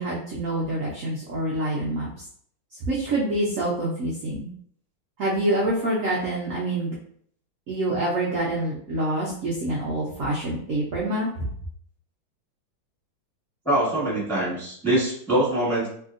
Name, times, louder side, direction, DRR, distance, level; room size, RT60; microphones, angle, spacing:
voice 1, 0.0-2.2 2.9-4.5 5.2-6.9 7.7-11.5, right 1 dB, 85° right, -4 dB, 0.7 m, -26 dB
voice 2, 13.6-15.9, right 1 dB, ahead, -8 dB, 1.0 m, -23 dB
3.2 x 2.7 x 2.5 m, 0.62 s
omnidirectional pair, 2.2 m